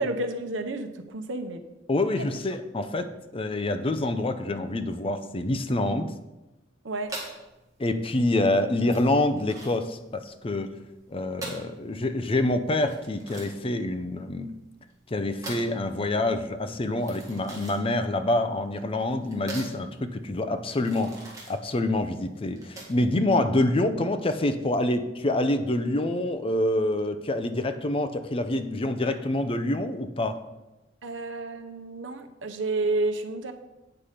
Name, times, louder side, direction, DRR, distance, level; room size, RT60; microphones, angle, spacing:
voice 1, 0.0-1.6 2.2-2.3 6.8-7.1 31.0-33.5, right 2 dB, 85° right, 7 dB, 0.8 m, -30 dB
voice 2, 1.9-6.1 7.8-10.7 11.1-14.5 15.1-21.2 21.5-30.4, left 1 dB, 30° left, 9 dB, 0.6 m, -26 dB
sound 1, 7.0-23.2, right 2 dB, 20° right, 1.9 m, -43 dB
8.7 x 5.7 x 4.9 m, 1.0 s
head